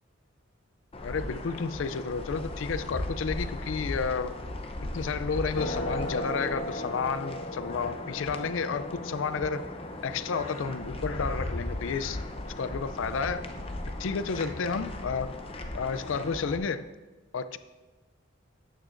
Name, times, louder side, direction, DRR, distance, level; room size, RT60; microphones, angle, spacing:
sound 1, 0.9-16.6, left 1 dB, 30° left, 0.6 m, -36 dB
voice 1, 1.0-4.4 4.9-9.7 10.0-12.2 12.5-13.5 14.0-15.3 15.7-16.8 17.3-17.6, left 5 dB, 70° left, 12 dB, 0.4 m, -31 dB
13.0 x 9.1 x 2.5 m, 1.2 s
head